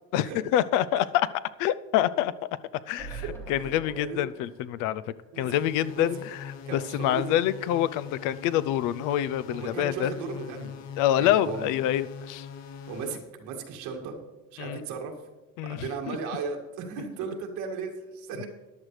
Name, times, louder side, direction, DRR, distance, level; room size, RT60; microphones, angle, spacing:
voice 1, 0.1-1.3 1.6-2.3 2.9-5.0 5.4-6.2 6.7-10.1 11.0-12.5 14.6-14.8 15.6-15.8 16.1-16.2, left 12 dB, 80° left, 17 dB, 0.6 m, -26 dB
sound 1, 3.0-6.2 6.6-6.7 6.9-7.0, right 4 dB, 10° left, 2.2 m, -44 dB
voice 2, 3.6-4.2 5.3-5.5 5.9-6.1 6.7-7.4 9.5-10.7 11.2-11.7 12.9-14.2 14.5-15.1 15.7-18.5, right 5 dB, 65° right, 1 dB, 2.1 m, -36 dB
sound 2, 5.5-13.2, left 7 dB, 60° left, 1.0 m, -42 dB
14.0 x 10.5 x 3.3 m, 1.1 s
cardioid pair, 180°, 31 cm